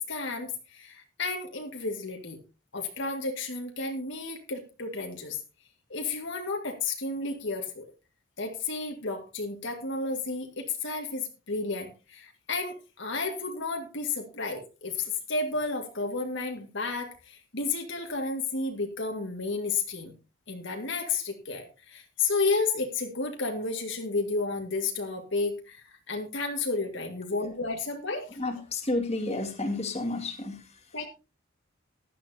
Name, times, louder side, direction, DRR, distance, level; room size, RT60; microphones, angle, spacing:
voice 1, 0.1-2.4 2.7-5.4 5.9-7.8 8.4-20.1 20.5-28.4 30.9-31.1, left 3 dB, 60° left, 4 dB, 1.9 m, -32 dB
voice 2, 28.3-31.0, left 2 dB, 30° left, 4 dB, 2.2 m, -32 dB
16.0 x 12.0 x 2.8 m, 0.30 s
head